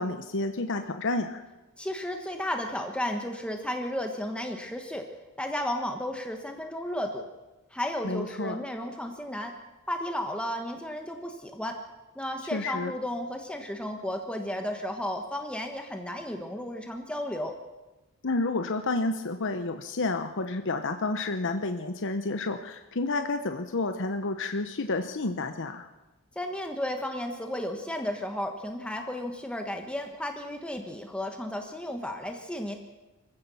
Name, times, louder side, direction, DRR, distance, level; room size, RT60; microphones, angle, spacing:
voice 1, 0.0-1.4 8.0-8.6 12.5-12.9 18.2-25.9, left 2 dB, 60° left, 7 dB, 1.0 m, -30 dB
voice 2, 1.8-5.1 5.4-7.2 7.7-9.5 9.9-11.8 12.1-17.5 26.3-32.8, left 1 dB, 5° left, 3 dB, 1.4 m, -33 dB
25.0 x 15.5 x 7.1 m, 1.1 s
head